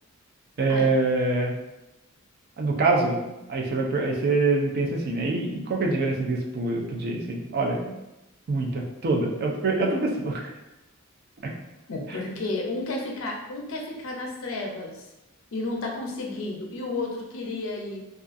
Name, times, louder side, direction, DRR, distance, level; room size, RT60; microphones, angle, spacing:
voice 1, 0.6-1.6 2.6-8.0 8.5-10.5 11.4-11.5, right 3 dB, 50° right, 0 dB, 0.4 m, -25 dB
voice 2, 11.9-15.0 15.5-18.0, left 2 dB, 65° left, 0 dB, 0.5 m, -32 dB
2.4 x 2.3 x 2.4 m, 0.96 s
head